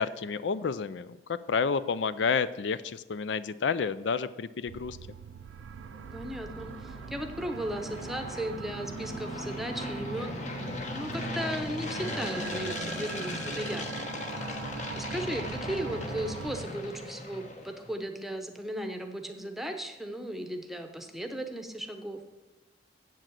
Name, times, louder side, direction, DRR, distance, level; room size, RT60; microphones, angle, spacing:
voice 1, 0.0-5.0, left 5 dB, 75° left, 15 dB, 0.4 m, -30 dB
sound 1, 4.7-16.7, right 6 dB, 85° right, 0.3 m, -42 dB
sound 2, 5.6-17.9, left 2 dB, 40° left, 1.2 m, -38 dB
voice 2, 6.1-10.3 10.9-14.1 14.9-22.2, right 1 dB, ahead, 5 dB, 0.8 m, -36 dB
7.8 x 7.5 x 7.5 m, 1.1 s
head